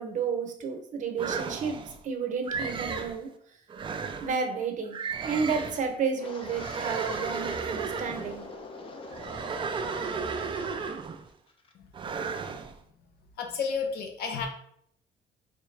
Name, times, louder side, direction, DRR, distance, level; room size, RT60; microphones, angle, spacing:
voice 1, 0.0-1.8 2.0-3.3 4.2-5.0 5.2-8.5, right 5 dB, 50° right, 5 dB, 0.8 m, -31 dB
sound 1, 1.2-2.0 2.5-3.2 3.7-4.4 4.9-5.9 6.4-8.4 9.1-11.3 11.9-12.7, right 5 dB, 30° right, 0.4 m, -34 dB
Wind, 6.2-11.0 11.3-11.7 12.1-12.4, left 3 dB, 30° left, 0.7 m, -44 dB
voice 2, 13.4-14.5, left 5 dB, 70° left, 3 dB, 0.8 m, -31 dB
3.6 x 3.1 x 3.2 m, 0.69 s
cardioid pair, 110°, 17 cm